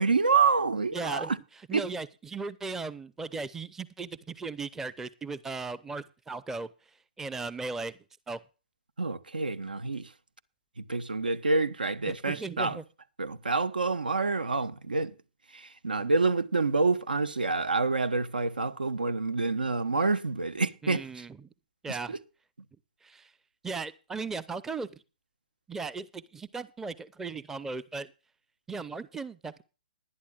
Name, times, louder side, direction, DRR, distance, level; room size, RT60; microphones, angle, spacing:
voice 1, 0.0-1.4 1.7-1.9 9.0-10.1 10.8-12.8 13.2-15.1 15.5-21.3 21.9-22.2, right 4 dB, 80° right, 1.2 m, -27 dB
voice 2, 0.9-1.3 1.7-6.7 7.2-8.0 8.3-8.4 12.1-12.8 20.8-21.5 21.8-22.1 23.0-23.3 23.6-24.9 25.7-28.1 28.7-29.6, right 4 dB, 10° right, 0.6 m, -37 dB
20.0 x 11.5 x 2.4 m
figure-of-eight pair, 125°, 5 cm